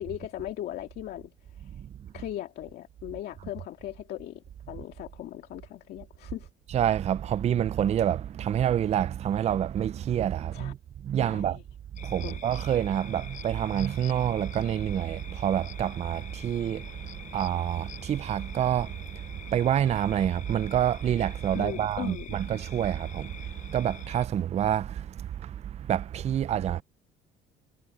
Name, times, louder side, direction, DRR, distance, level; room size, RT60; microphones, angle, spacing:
voice 1, 0.0-1.8 2.1-6.5 10.5-10.7 11.2-11.6 12.2-12.4 21.5-22.5, left 13 dB, 70° left, 2.2 m, -39 dB
voice 2, 6.7-10.8 11.0-11.6 12.0-25.5 25.8-26.8, right 10 dB, 40° right, 0.5 m, -27 dB
sound 1, 11.9-24.3, left 8 dB, 50° left, 5.2 m, -47 dB
cardioid pair, 110°, 17 cm